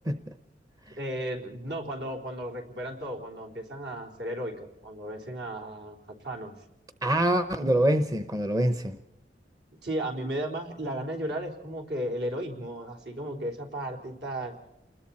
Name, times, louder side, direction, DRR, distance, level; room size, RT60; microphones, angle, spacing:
voice 1, 1.0-6.6 9.8-14.5, right 1 dB, 70° right, 2 dB, 3.9 m, -34 dB
voice 2, 7.0-9.0, right 1 dB, 20° right, 10 dB, 0.9 m, -25 dB
29.0 x 21.0 x 4.3 m, 0.87 s
head